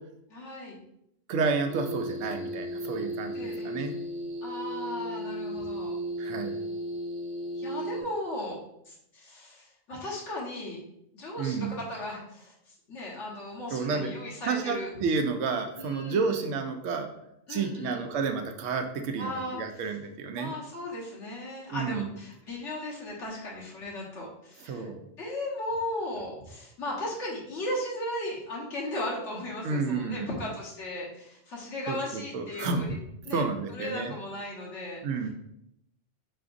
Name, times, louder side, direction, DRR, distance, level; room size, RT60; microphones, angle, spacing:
voice 1, 0.3-0.8 3.3-3.8 4.4-6.0 7.5-8.6 8.8-10.8 11.1-14.9 15.8-16.4 17.5-18.0 19.2-19.9 20.4-24.9 25.2-33.0 33.2-33.4 33.7-35.0, left 1 dB, 75° left, -4 dB, 1.6 m, -36 dB
voice 2, 1.3-3.9 6.2-6.6 11.4-11.7 13.7-14.1 14.4-17.1 17.5-20.5 21.7-22.1 24.7-25.0 29.6-30.3 31.9-32.8 33.3-34.1 35.0-35.3, right 4 dB, 85° right, 5 dB, 0.9 m, -30 dB
sound 1, 1.7-8.0, equal, 55° right, 1.0 m, -35 dB
4.8 x 4.3 x 2.5 m, 0.78 s
omnidirectional pair, 1.2 m